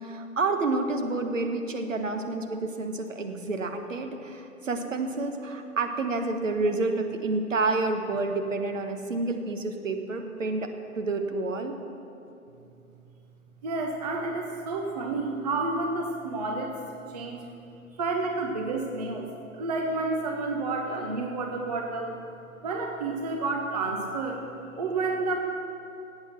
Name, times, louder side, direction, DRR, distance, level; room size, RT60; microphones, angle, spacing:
voice 1, 0.0-11.8, right 3 dB, 60° right, 5 dB, 1.4 m, -29 dB
voice 2, 13.6-16.8 17.1-17.4 17.9-22.2 22.6-24.4 24.7-25.3, right 3 dB, 30° right, 2 dB, 0.8 m, -30 dB
16.5 x 8.5 x 6.0 m, 2.7 s
figure-of-eight pair, 145°, 44 cm